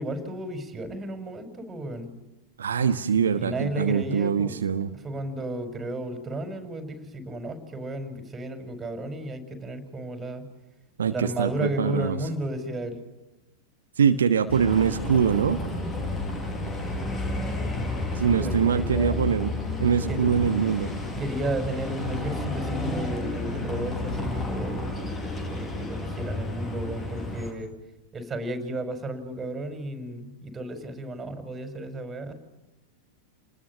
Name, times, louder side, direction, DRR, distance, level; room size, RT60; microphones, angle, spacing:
voice 1, 0.0-2.1 3.3-4.6 5.0-10.5 11.1-13.0 18.2-19.2 20.1-20.3 21.2-24.9 25.5-27.7 28.1-32.3, right 1 dB, 20° right, 8 dB, 5.7 m, -33 dB
voice 2, 2.6-4.9 11.0-12.2 14.0-15.6 18.1-19.5 19.8-20.9, right 7 dB, 65° right, 7 dB, 1.3 m, -23 dB
Bus, 14.5-27.5, left 2 dB, 20° left, 6.5 m, -31 dB
29.5 x 20.5 x 7.4 m, 1.0 s
figure-of-eight pair, 90°, 0 cm